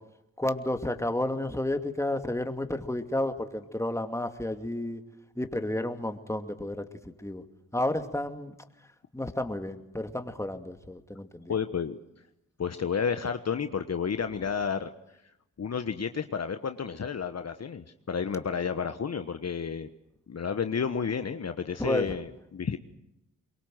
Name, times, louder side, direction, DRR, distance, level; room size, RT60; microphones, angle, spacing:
voice 1, 0.4-5.0 5.4-7.4 7.7-8.5 9.1-11.5 21.8-22.1, left 1 dB, 10° left, 6 dB, 2.6 m, -31 dB
voice 2, 11.5-12.0 12.6-14.9 15.6-19.9 20.3-22.8, left 6 dB, 45° left, 9 dB, 1.3 m, -31 dB
24.0 x 22.5 x 7.9 m, 0.84 s
supercardioid pair, 40°, 35 cm